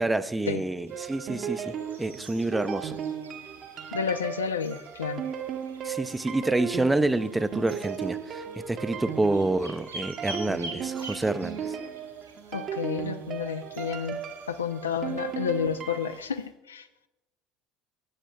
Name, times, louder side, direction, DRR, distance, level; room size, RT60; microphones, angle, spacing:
voice 1, 0.0-3.0 5.8-11.8, right 2 dB, 10° right, 14 dB, 0.4 m, -28 dB
sound 1, 0.9-16.2, right 8 dB, 40° right, 0.7 m, -36 dB
sound 2, 0.9-16.5, right 2 dB, 85° right, 1.4 m, -47 dB
voice 2, 3.9-5.2 12.5-14.2 14.5-16.9, left 7 dB, 75° left, 12 dB, 0.4 m, -30 dB
14.0 x 8.1 x 2.3 m, 1.0 s
figure-of-eight pair, 65°, 0 cm